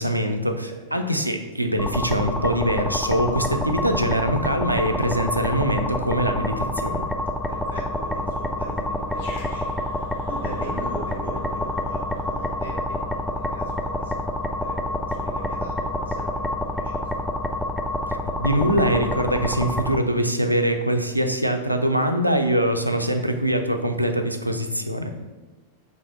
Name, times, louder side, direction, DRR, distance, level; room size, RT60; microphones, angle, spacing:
voice 1, 0.0-7.1 18.1-25.2, equal, 90° right, 6 dB, 0.3 m, -23 dB
voice 2, 0.5-1.0 3.4-3.7 7.5-9.7 10.3-13.2 13.5-17.2, equal, 90° left, -6 dB, 1.2 m, -40 dB
sound 1, 1.8-20.0, left 1 dB, ahead, 0.3 m, -28 dB
Growling, 9.1-13.7, left 1 dB, 60° left, 1.0 m, -48 dB
3.3 x 2.6 x 3.9 m, 1.3 s
figure-of-eight pair, 90°, 0 cm